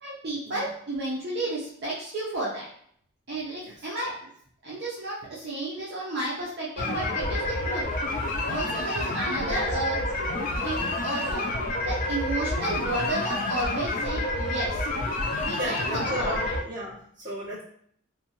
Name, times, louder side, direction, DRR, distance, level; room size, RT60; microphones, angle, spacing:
voice 1, 0.0-2.7 3.3-4.3 4.6-7.8 8.5-10.0 10.6-11.5 11.8-14.8 15.4-16.5, right 2 dB, 50° right, -7 dB, 0.6 m, -32 dB
sound 1, 6.8-16.6, left 2 dB, 40° left, 0.3 m, -29 dB
voice 2, 9.4-10.0 10.3-10.4 15.3-17.6, equal, 20° right, -10 dB, 1.3 m, -36 dB
2.6 x 2.2 x 2.8 m, 0.63 s
head